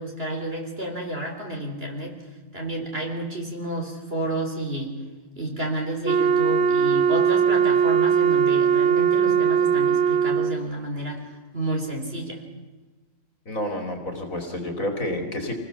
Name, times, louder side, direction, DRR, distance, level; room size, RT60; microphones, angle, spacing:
voice 1, 0.0-2.1 2.5-5.0 5.4-12.4, right 1 dB, 30° right, 1 dB, 3.8 m, -30 dB
Wind instrument woodwind instrument, 6.0-10.7, right 7 dB, 50° right, 0.9 m, -20 dB
voice 2, 13.5-15.5, left 1 dB, 45° left, 4 dB, 3.1 m, -29 dB
26.0 x 19.5 x 7.1 m, 1.2 s
omnidirectional pair, 1.9 m